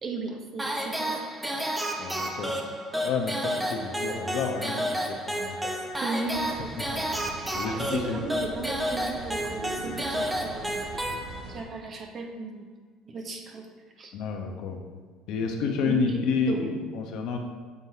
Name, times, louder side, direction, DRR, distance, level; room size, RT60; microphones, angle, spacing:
voice 1, 0.0-1.3 6.0-7.2 7.6-10.8 11.5-12.7 13.0-13.7 14.0-14.1 15.8-16.2 16.5-16.9, right 3 dB, 40° right, 2 dB, 1.2 m, -36 dB
sound 1, 0.6-11.7, equal, 10° right, 0.8 m, -31 dB
voice 2, 2.0-2.5 3.0-5.9 7.5-8.2 14.1-14.8 15.3-17.4, left 5 dB, 65° left, 3 dB, 1.0 m, -30 dB
sound 2, 6.3-11.6, right 3 dB, 80° right, 1.0 m, -42 dB
6.9 x 4.1 x 4.7 m, 1.5 s
supercardioid pair, 95°, 0 cm